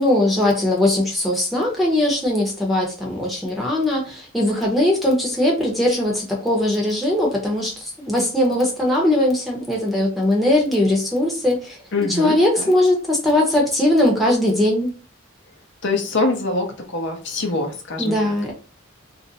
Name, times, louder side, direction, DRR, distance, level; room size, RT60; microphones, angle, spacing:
voice 1, 0.0-11.6 12.2-14.9 18.0-18.5, left 1 dB, ahead, -2 dB, 0.8 m, -20 dB
voice 2, 11.9-12.7 15.8-18.4, left 2 dB, 60° left, 2 dB, 0.7 m, -24 dB
2.5 x 2.1 x 3.9 m, 0.36 s
head